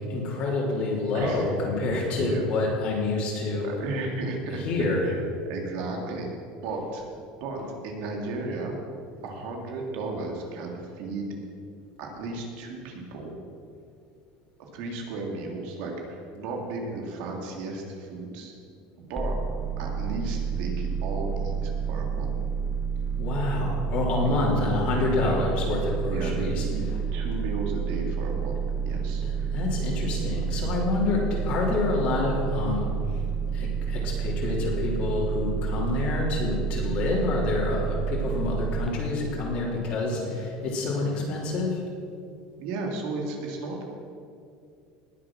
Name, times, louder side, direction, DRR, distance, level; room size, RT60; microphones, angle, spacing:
voice 1, 0.1-3.7 4.5-5.1 7.6-7.7 23.2-27.0 29.2-32.9 33.5-41.8, left 3 dB, 50° left, -3 dB, 3.2 m, -27 dB
voice 2, 1.1-1.6 2.2-2.4 3.6-5.2 5.5-6.3 6.6-7.0 7.4-7.6 7.8-8.7 9.2-11.3 12.0-13.3 14.6-18.5 19.0-19.3 19.8-22.3 24.2-24.7 25.1-25.5 26.1-26.8 27.1-29.5 40.1-40.3 40.9-41.3 42.6-43.8, right 3 dB, 65° right, 1 dB, 2.9 m, -34 dB
sound 1, 19.2-38.9, right 6 dB, ahead, 0.8 m, -29 dB
20.0 x 7.4 x 6.2 m, 2.4 s
cardioid pair, 150°, 3 cm